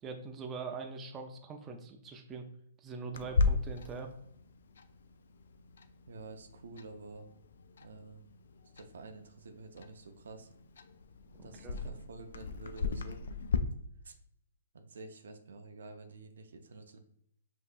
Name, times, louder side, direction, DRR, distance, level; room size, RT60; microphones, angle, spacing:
voice 1, 0.0-2.5 2.8-4.1 11.4-11.8, right 4 dB, 20° right, 4 dB, 0.5 m, -42 dB
Clock, 3.1-13.6, left 4 dB, 70° left, 0.3 m, -37 dB
voice 2, 6.1-7.3 7.8-8.2 8.7-10.5 11.4-13.2 14.0-14.1 14.7-17.0, right 3 dB, 75° right, 7 dB, 0.5 m, -49 dB
5.2 x 2.7 x 2.5 m, 0.72 s
hypercardioid pair, 130°, 0 cm